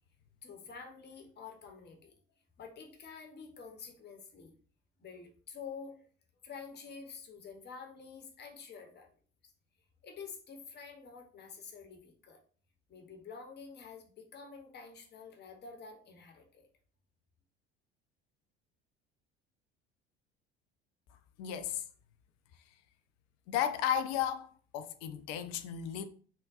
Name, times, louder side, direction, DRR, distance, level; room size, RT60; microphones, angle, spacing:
voice 1, 0.4-2.1 2.6-4.6 5.0-6.1 6.4-9.1 10.0-12.4 12.9-16.7, left 5 dB, 35° left, 0.8 m, -48 dB
voice 2, 21.4-21.8 23.5-26.1, left 10 dB, 55° left, 0.5 m, -34 dB
3.5 x 2.1 x 2.4 m
figure-of-eight pair, 60°, 32 cm